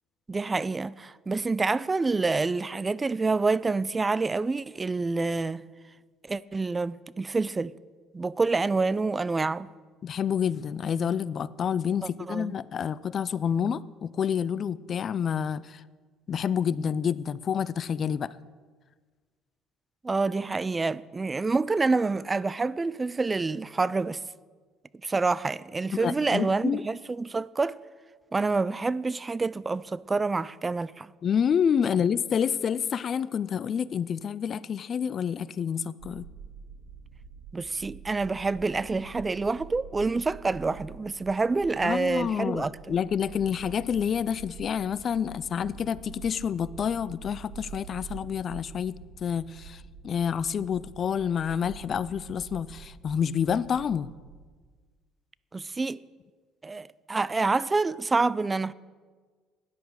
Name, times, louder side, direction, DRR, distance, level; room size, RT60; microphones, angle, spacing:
voice 1, 0.3-5.6 6.3-7.7 8.1-9.7 12.0-12.5 20.0-24.2 25.0-27.8 28.3-31.1 37.5-42.9 55.5-56.0 56.6-58.7, right 3 dB, 25° right, 0.4 m, -27 dB
voice 2, 10.0-15.8 16.3-18.3 25.9-26.8 31.2-36.3 41.8-54.1, left 7 dB, 50° left, 0.4 m, -28 dB
sound 1, 36.0-54.4, right 6 dB, 75° right, 1.2 m, -47 dB
13.0 x 10.0 x 4.8 m
hypercardioid pair, 65°, 0 cm